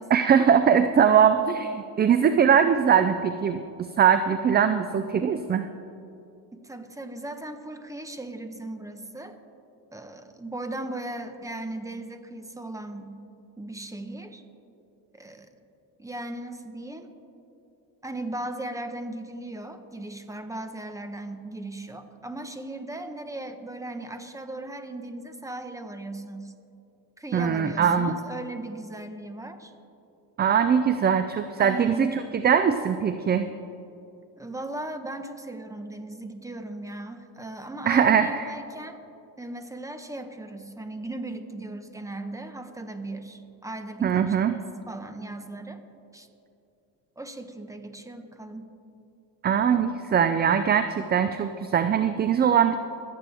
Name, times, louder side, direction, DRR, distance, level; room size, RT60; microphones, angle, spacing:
voice 1, 0.1-3.6 4.0-5.7 27.3-28.2 30.4-33.5 37.9-38.5 44.0-44.6 49.4-52.8, right 7 dB, 25° right, 10 dB, 0.4 m, -21 dB
voice 2, 6.5-9.4 9.9-13.1 13.6-14.4 15.1-15.5 16.0-17.1 18.0-26.5 27.2-29.7 31.6-32.1 34.4-39.0 39.4-45.8 46.1-46.3 47.2-48.7, right 2 dB, 10° right, 7 dB, 1.1 m, -37 dB
24.5 x 8.5 x 3.4 m, 2.7 s
supercardioid pair, 90°, 42 cm